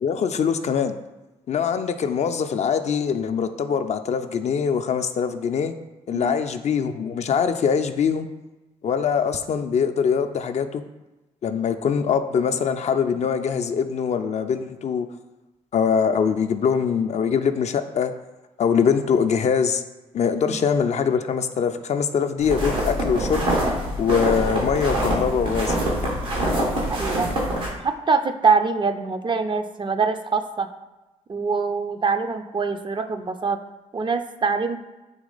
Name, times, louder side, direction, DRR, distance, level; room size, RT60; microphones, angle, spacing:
voice 1, 0.0-0.9 1.5-5.7 6.1-8.3 8.8-10.8 11.4-15.1 15.7-18.1 18.6-19.8 20.1-23.4 24.0-25.8, left 6 dB, 45° left, 8 dB, 0.4 m, -23 dB
sound 1, 22.4-27.7, right 1 dB, 90° right, 1.2 m, -25 dB
voice 2, 27.0-27.3 27.8-30.7 31.3-33.6 33.9-34.8, right 4 dB, 30° right, 8 dB, 0.4 m, -24 dB
4.0 x 2.9 x 3.8 m, 1.1 s
hypercardioid pair, 45°, 16 cm